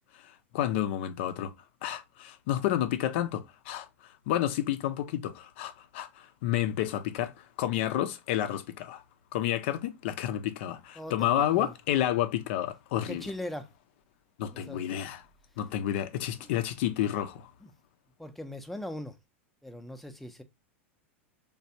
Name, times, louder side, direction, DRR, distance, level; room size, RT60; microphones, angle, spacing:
voice 1, 0.1-1.5 1.8-9.0 9.3-13.3 14.4-15.2 15.6-17.5, left 12 dB, 60° left, 0.5 m, -30 dB
voice 2, 11.0-11.7 12.9-13.7 14.5-14.9 16.2-16.5 17.6-17.7 18.2-19.2 19.6-20.4, left 1 dB, ahead, 0.5 m, -40 dB
3.3 x 2.3 x 2.7 m
hypercardioid pair, 100°, 7 cm